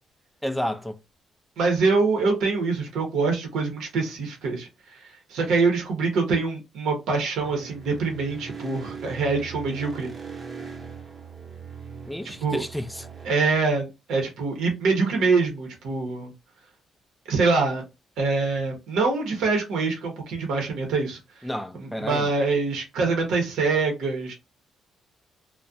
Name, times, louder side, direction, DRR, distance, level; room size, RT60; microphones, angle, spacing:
voice 1, 0.4-1.0 12.1-13.1 21.4-22.3, left 1 dB, 5° left, 0.3 m, -31 dB
voice 2, 1.6-10.1 12.4-12.6 13.2-16.3 17.3-17.8 18.2-21.2 21.8-24.3, right 4 dB, 80° right, 0.7 m, -24 dB
sound 1, 7.4-13.3, right 5 dB, 35° right, 0.7 m, -40 dB
2.3 x 2.1 x 2.6 m
cardioid pair, 90°, 0 cm